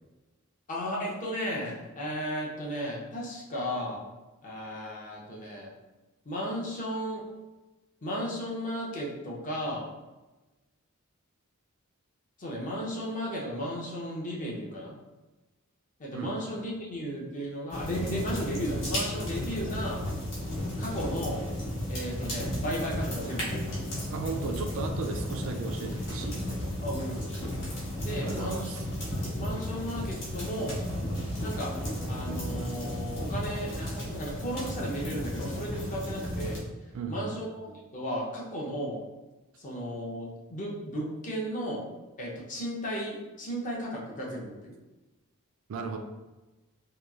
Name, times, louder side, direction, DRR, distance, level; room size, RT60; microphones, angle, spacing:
voice 1, 0.7-4.1 4.4-5.7 6.2-7.2 8.0-9.9 12.4-14.9 16.0-20.0 20.8-21.4 21.9-23.7 26.8-27.6 28.0-28.7 29.1-30.8 31.4-31.7 32.1-36.6 37.1-39.0 39.6-41.8 42.2-44.7, equal, 35° left, -3 dB, 0.6 m, -35 dB
sound 1, 17.7-36.6, equal, 60° left, 1.0 m, -34 dB
voice 2, 24.1-26.4 28.2-28.8 36.9-37.3 45.7-46.0, right 4 dB, 65° right, 5 dB, 0.3 m, -35 dB
2.9 x 2.3 x 2.3 m, 1.1 s
head